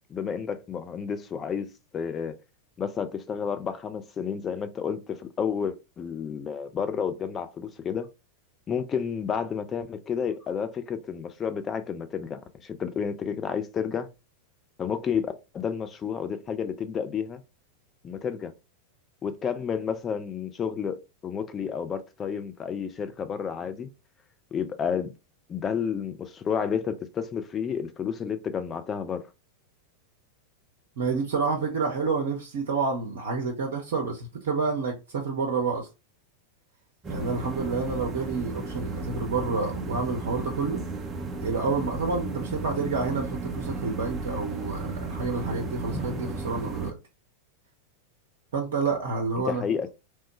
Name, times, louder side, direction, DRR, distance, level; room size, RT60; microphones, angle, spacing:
voice 1, 0.1-1.7 1.9-2.4 2.8-8.1 8.7-14.1 14.8-17.4 18.0-18.5 19.2-23.9 24.5-25.1 25.5-29.3 49.4-49.9, left 7 dB, 25° left, 0.4 m, -31 dB
voice 2, 31.0-35.9 37.1-40.8 41.4-47.0 48.5-49.6, right 4 dB, 55° right, 0.6 m, -29 dB
sound 1, 37.0-46.9, right 3 dB, 20° right, 0.6 m, -34 dB
3.1 x 2.1 x 3.0 m
figure-of-eight pair, 90°, 0 cm